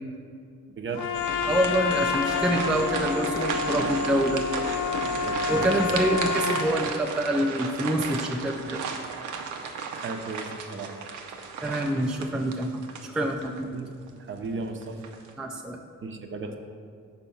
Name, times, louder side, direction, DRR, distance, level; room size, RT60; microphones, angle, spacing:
voice 1, 0.7-1.1 5.1-6.0 9.9-10.9 13.7-13.9 14.3-15.0 16.0-16.6, right 3 dB, 40° right, 5 dB, 0.6 m, -35 dB
Trumpet, 0.9-6.7, left 5 dB, 80° left, 0.5 m, -29 dB
sound 1, 0.9-13.6 14.1-14.2 14.8-15.3, right 5 dB, 85° right, 0.7 m, -35 dB
sound 2, 1.1-6.3, left 3 dB, 50° left, 0.7 m, -38 dB
voice 2, 1.5-4.4 5.5-8.8 11.6-13.7 15.4-15.8, right 1 dB, 5° right, 2 dB, 0.4 m, -26 dB
5.5 x 4.1 x 5.6 m, 2.3 s
cardioid pair, 90°, 30 cm